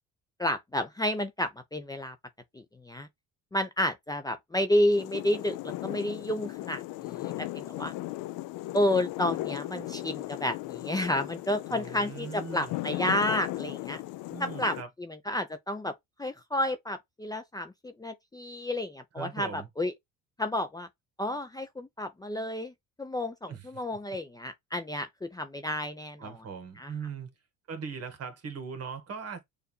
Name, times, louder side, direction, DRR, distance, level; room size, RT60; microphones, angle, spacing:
voice 1, 0.4-2.2 2.5-3.1 3.5-7.9 8.7-14.0 14.4-15.9 16.2-19.9 20.4-20.9 21.2-22.7 23.0-26.3 26.8-26.9, left 1 dB, 10° left, 0.7 m, -31 dB
sound 1, 4.9-14.8, left 17 dB, 70° left, 0.5 m, -37 dB
voice 2, 11.7-12.8 14.3-14.9 19.2-19.7 23.5-23.8 26.2-27.3 27.7-29.4, right 6 dB, 45° right, 1.7 m, -40 dB
6.7 x 2.7 x 2.2 m
cardioid pair, 105°, 34 cm